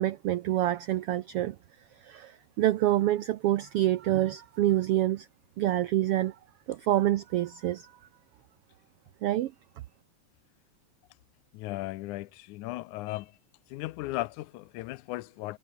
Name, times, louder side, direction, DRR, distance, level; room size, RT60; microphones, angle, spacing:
voice 1, 0.0-1.6 2.0-5.3 5.6-6.4 6.7-7.9 9.2-9.5, right 14 dB, 85° right, 1.3 m, -27 dB
voice 2, 11.5-13.4 13.7-15.6, left 18 dB, 90° left, 2.1 m, -36 dB
omnidirectional pair, 3.5 m